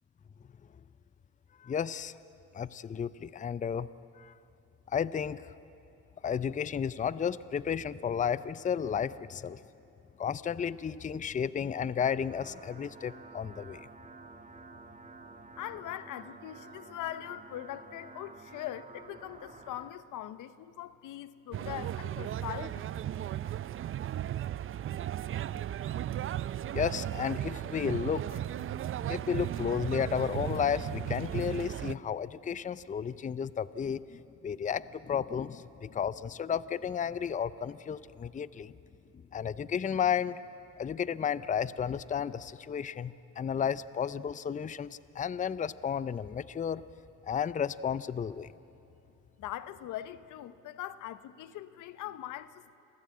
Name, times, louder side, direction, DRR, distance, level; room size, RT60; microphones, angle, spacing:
voice 1, 1.6-2.2 2.5-3.9 4.2-4.3 4.9-5.5 6.2-9.6 10.2-13.9 26.7-28.4 29.1-38.7 39.3-40.4 40.8-46.8 47.3-48.5, left 7 dB, 25° left, 0.5 m, -33 dB
sound 1, 12.0-19.9, right 3 dB, 25° right, 1.6 m, -51 dB
voice 2, 15.6-22.9 49.4-52.7, left 13 dB, 85° left, 0.8 m, -41 dB
sound 2, 21.5-31.9, right 11 dB, 45° right, 0.5 m, -35 dB
26.5 x 16.5 x 8.6 m
cardioid pair, 90°, 30 cm